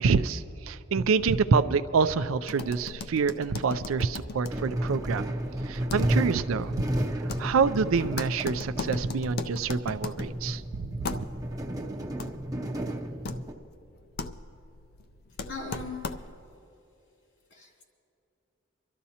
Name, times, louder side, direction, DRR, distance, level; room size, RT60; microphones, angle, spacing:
voice 1, 0.0-5.3 5.7-6.8 7.1-11.1, right 5 dB, 90° right, 14 dB, 0.4 m, -27 dB
sound 1, 2.4-16.5, left 3 dB, 50° left, 0.4 m, -39 dB
sound 2, 4.5-13.5, right 1 dB, 20° right, 0.6 m, -32 dB
voice 2, 15.5-16.2 17.5-17.8, left 3 dB, 70° left, -2 dB, 3.0 m, -39 dB
25.0 x 13.0 x 2.8 m, 2.9 s
head